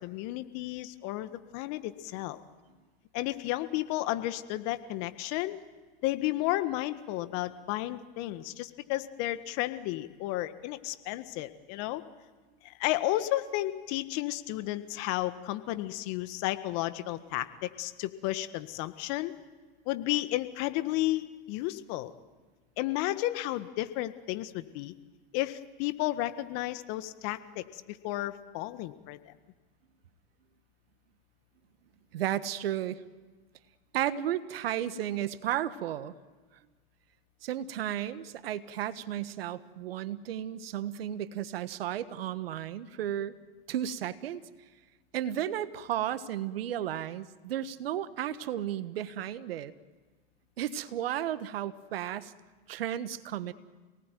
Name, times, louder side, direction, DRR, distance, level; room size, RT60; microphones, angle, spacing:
voice 1, 0.0-2.4 3.1-5.6 6.0-12.0 12.6-19.3 19.9-22.1 22.8-24.9 25.3-29.3, left 16 dB, 55° left, 11 dB, 1.7 m, -33 dB
voice 2, 32.1-33.0 33.9-36.1 37.4-43.4 43.7-44.4 45.1-49.7 50.6-52.3 52.7-53.5, right 11 dB, 75° right, 13 dB, 1.4 m, -33 dB
28.0 x 19.0 x 9.3 m, 1.3 s
hypercardioid pair, 100°, 30 cm